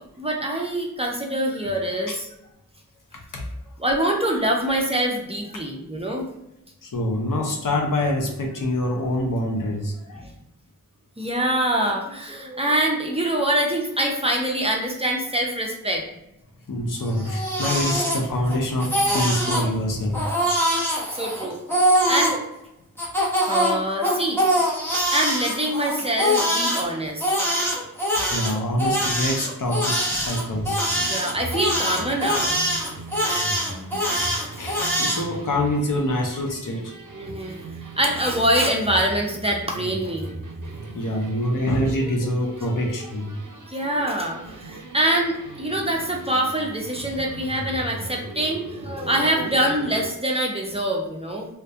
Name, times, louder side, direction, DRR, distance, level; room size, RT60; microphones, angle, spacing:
voice 1, 0.0-2.3 3.8-6.3 10.1-10.3 11.2-16.0 21.1-21.6 22.1-22.3 23.4-24.4 25.1-27.3 31.1-32.5 37.1-37.6 38.0-40.3 43.7-51.5, right 1 dB, 20° right, -1 dB, 0.5 m, -24 dB
voice 2, 6.8-10.3 16.7-20.2 28.3-30.8 34.6-36.9 40.9-43.3, left 1 dB, 70° left, 1 dB, 0.6 m, -25 dB
Crying sobbing, 17.1-18.5 18.8-19.7 20.1-22.4 23.0-26.8 27.2-35.2, equal, 5° left, 0.8 m, -23 dB
sound 1, 30.5-50.1, right 2 dB, 65° right, 0.5 m, -38 dB
2.2 x 2.1 x 2.6 m, 0.85 s
wide cardioid pair, 45°, 33 cm